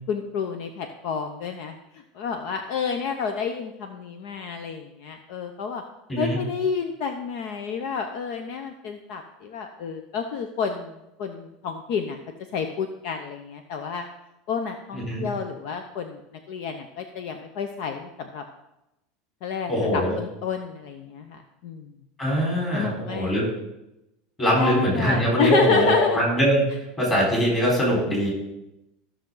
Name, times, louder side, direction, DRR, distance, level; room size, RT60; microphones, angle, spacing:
voice 1, 0.1-1.8 2.1-5.8 6.2-12.2 12.5-14.1 14.5-16.2 16.5-18.4 19.4-21.9 22.7-23.5 24.5-26.2, left 6 dB, 55° left, 6 dB, 0.8 m, -29 dB
voice 2, 14.9-15.3 19.7-20.1 22.2-23.5 24.4-26.6 27.0-28.3, equal, 20° left, -4 dB, 4.4 m, -22 dB
14.5 x 6.5 x 3.9 m, 0.89 s
supercardioid pair, 160°, 0 cm